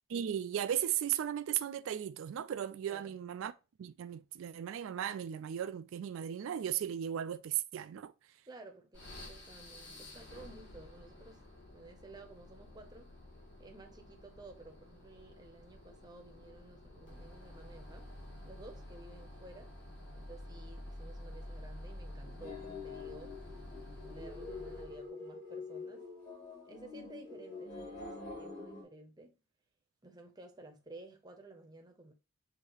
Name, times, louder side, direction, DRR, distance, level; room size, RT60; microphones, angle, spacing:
voice 1, 0.1-3.5 3.8-8.1, right 10 dB, 70° right, 0.3 m, -36 dB
voice 2, 2.9-3.2 8.5-11.4 11.7-13.1 13.6-18.1 18.4-19.7 20.1-23.4 24.0-26.1 26.7-29.4 30.0-32.1, right 2 dB, 20° right, 0.7 m, -54 dB
sound 1, 8.9-25.1, left 1 dB, 60° left, 2.1 m, -50 dB
sound 2, 22.2-28.8, left 4 dB, 40° left, 1.9 m, -46 dB
6.3 x 2.8 x 3.0 m
head